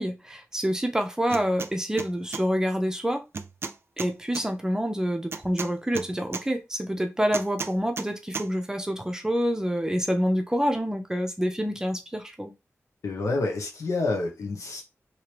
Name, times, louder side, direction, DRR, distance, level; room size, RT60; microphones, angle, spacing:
voice 1, 0.0-3.2 4.0-12.5, equal, 10° right, 0.6 m, -27 dB
sound 1, 1.3-1.7 2.0-2.4 3.3-4.4 5.3-6.4 7.3-8.1 8.3-8.5, right 4 dB, 50° right, 0.3 m, -34 dB
voice 2, 13.0-14.8, left 3 dB, 85° left, 1.0 m, -28 dB
3.2 x 2.9 x 3.0 m
wide cardioid pair, 110°, 5 cm